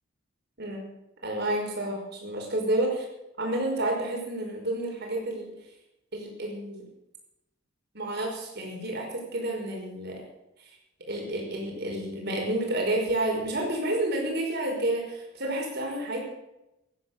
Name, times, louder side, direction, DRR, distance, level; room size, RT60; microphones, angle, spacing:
voice 1, 1.2-2.9 3.4-5.5 6.1-6.8 7.9-10.2 10.6-10.7 11.1-16.2, right 1 dB, 50° right, 0 dB, 5.3 m, -30 dB
15.5 x 10.5 x 6.7 m, 0.90 s
head